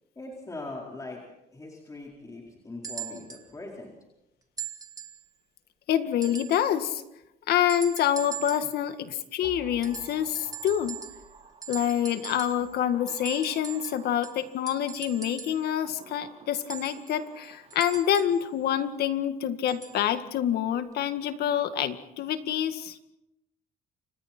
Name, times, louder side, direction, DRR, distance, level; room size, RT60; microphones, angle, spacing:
voice 1, 0.2-1.2 1.5-3.9, left 2 dB, 20° left, -2 dB, 4.6 m, -41 dB
sound 1, 2.8-3.5 4.6-5.2 6.2-6.8 7.7-8.8 9.8-11.4 11.6-12.7 13.1-15.7 16.7-18.4 19.7-20.0 20.9-21.0, right 8 dB, 20° right, 2.5 m, -41 dB
voice 2, 5.9-7.0 7.5-11.0 11.7-23.0, left 10 dB, 70° left, 9 dB, 2.0 m, -27 dB
sound 2, 9.4-14.9 15.5-18.7 19.0-19.1, right 4 dB, 35° right, 4.9 m, -52 dB
29.5 x 26.5 x 4.5 m, 0.90 s
cardioid pair, 110°, 17 cm